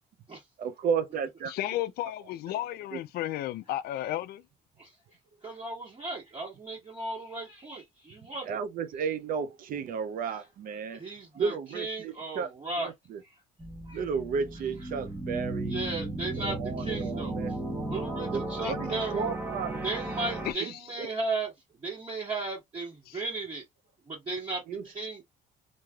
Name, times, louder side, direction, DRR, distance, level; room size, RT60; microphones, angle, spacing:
voice 1, 0.6-1.5 2.9-3.0 8.4-11.0 11.3-12.5 12.8-13.2 13.9-15.8 16.2-17.5 18.3-19.7 20.6-20.7 21.0-21.1 24.7-24.8, right 6 dB, 55° right, 0.5 m, -33 dB
voice 2, 1.5-4.4 18.6-18.9 20.4-20.8 23.1-23.2, left 13 dB, 65° left, 0.4 m, -34 dB
voice 3, 5.4-8.5 10.9-12.9 13.9-14.0 15.7-17.4 17.9-19.2 19.8-21.5 21.8-23.6 24.1-25.2, right 3 dB, 30° right, 1.6 m, -35 dB
sound 1, 13.6-20.5, right 2 dB, 10° right, 0.9 m, -35 dB
3.1 x 2.6 x 2.3 m
cardioid pair, 110°, 17 cm